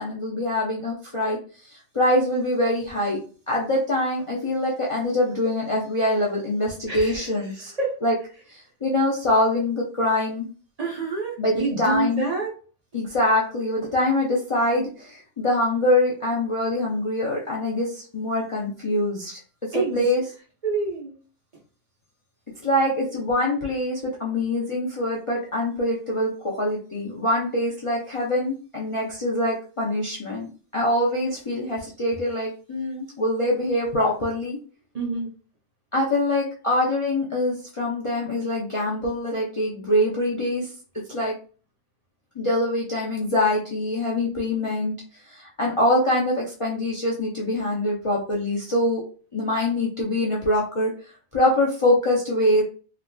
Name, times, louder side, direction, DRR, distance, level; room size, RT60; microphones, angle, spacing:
voice 1, 0.0-1.4 1.6-3.2 3.5-7.7 8.0-8.1 8.5-10.5 11.4-12.2 12.9-19.4 19.7-20.2 22.6-34.6 35.9-40.7 41.1-41.3 42.4-44.9 45.2-49.0 49.3-50.9 51.3-52.6, left 1 dB, 40° left, -5 dB, 0.4 m, -24 dB
voice 2, 6.9-7.5 7.8-8.0 10.8-12.5 19.7-20.0 20.6-21.2 34.9-35.3, right 3 dB, 40° right, -2 dB, 0.7 m, -27 dB
3.0 x 2.4 x 2.2 m, 0.39 s
omnidirectional pair, 1.2 m